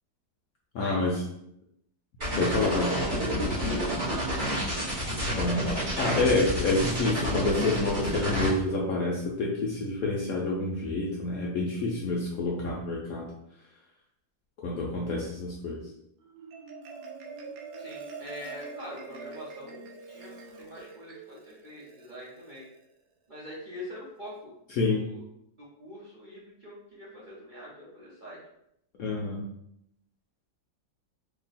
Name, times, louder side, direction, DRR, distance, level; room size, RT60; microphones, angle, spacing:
voice 1, 0.7-1.2 2.4-3.0 5.4-13.3 14.6-15.8 24.7-25.0 29.0-29.4, left 2 dB, 75° left, -2 dB, 0.8 m, -28 dB
sound 1, 2.2-8.5, equal, 25° right, 1.4 m, -29 dB
voice 2, 2.2-4.1 17.8-22.6 23.3-24.5 24.8-25.2 25.6-28.4, left 1 dB, 55° right, -7 dB, 0.5 m, -44 dB
Marimba xylophone, 16.2-22.8, right 4 dB, 70° right, 1.0 m, -44 dB
2.9 x 2.9 x 4.0 m, 0.77 s
omnidirectional pair, 2.1 m